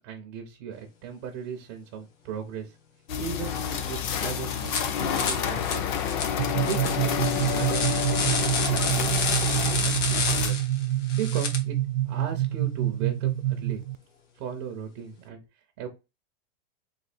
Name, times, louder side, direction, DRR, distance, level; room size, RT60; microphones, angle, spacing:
voice 1, 0.0-2.8 3.2-5.8 6.4-8.0 8.4-9.1 9.4-10.7 11.1-11.8 12.1-13.8 14.4-15.4 15.8-15.9, right 7 dB, 25° right, 3 dB, 0.4 m, -37 dB
sound 1, 3.1-10.5, left 8 dB, 40° left, 0.5 m, -29 dB
sound 2, 4.0-4.2 4.6-4.8 5.2-11.6, left 5 dB, 75° left, 1.4 m, -30 dB
sound 3, 6.4-13.9, right 14 dB, 85° right, 0.5 m, -27 dB
3.3 x 2.7 x 4.0 m, 0.27 s
supercardioid pair, 170°, 38 cm